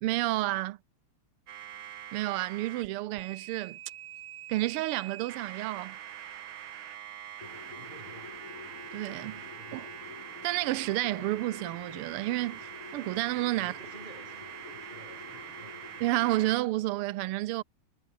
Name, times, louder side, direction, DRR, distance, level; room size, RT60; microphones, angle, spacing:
voice 1, 0.0-0.8 2.1-3.8 4.5-6.0 8.9-9.3 9.7-9.8 10.4-12.6 12.9-13.7 16.0-17.6, right 17 dB, 85° right, 1.6 m, -30 dB
sound 1, 1.5-2.9 3.2-16.6, right 11 dB, 65° right, 1.9 m, -44 dB
sound 2, 7.4-16.6, left 6 dB, 75° left, 3.5 m, -49 dB
voice 2, 7.4-8.4 9.2-10.1 13.5-15.9, right 2 dB, 20° right, 4.5 m, -53 dB
omnidirectional pair, 2.4 m